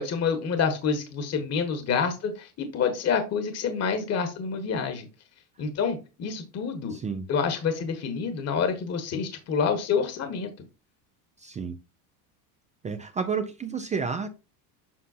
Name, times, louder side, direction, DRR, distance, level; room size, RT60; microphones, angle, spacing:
voice 1, 0.0-5.1 5.6-7.0 7.3-10.5, left 6 dB, 35° left, 1.3 m, -27 dB
voice 2, 6.9-7.3 11.4-11.8 12.8-14.3, right 5 dB, 15° right, 0.4 m, -31 dB
7.5 x 5.4 x 2.7 m
supercardioid pair, 120°, 45 cm